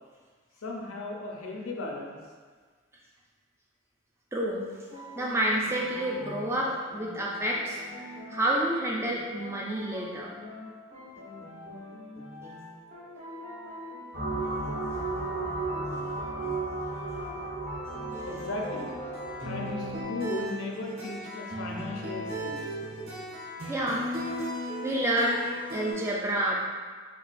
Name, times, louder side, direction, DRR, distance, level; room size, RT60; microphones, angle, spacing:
voice 1, 0.6-2.2 18.3-22.8, left 2 dB, 90° left, 0 dB, 0.6 m, -37 dB
voice 2, 4.3-4.7 5.1-7.8 8.3-10.3 23.7-24.4 24.8-25.4 25.7-26.6, right 1 dB, 10° right, -3 dB, 0.4 m, -29 dB
sound 1, 4.7-20.0, left 1 dB, 35° right, 1.0 m, -44 dB
sound 2, 14.1-20.0, right 2 dB, 60° right, 1.3 m, -34 dB
sound 3, 17.8-25.9, equal, 80° right, 1.0 m, -37 dB
4.6 x 2.3 x 2.5 m, 1.5 s
head